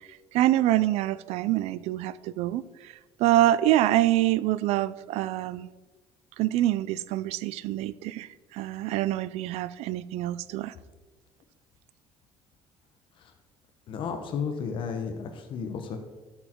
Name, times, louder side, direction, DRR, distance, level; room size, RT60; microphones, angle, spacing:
voice 1, 0.3-2.9 3.2-5.7 6.4-10.7, right 14 dB, 75° right, 18 dB, 0.4 m, -25 dB
voice 2, 13.9-16.0, left 6 dB, 50° left, 6 dB, 1.0 m, -33 dB
13.0 x 6.6 x 4.5 m, 1.2 s
cardioid pair, 155°, 11 cm